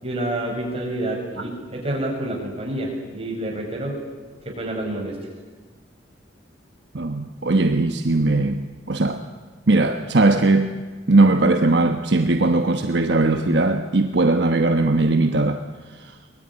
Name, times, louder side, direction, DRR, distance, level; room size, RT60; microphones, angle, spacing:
voice 1, 0.0-4.0 4.4-5.2, right 1 dB, 35° right, 1 dB, 6.2 m, -28 dB
voice 2, 6.9-9.2 9.7-10.8 11.1-15.6 16.0-16.1, right 2 dB, 70° right, 6 dB, 1.2 m, -19 dB
23.0 x 20.5 x 9.9 m, 1.4 s
head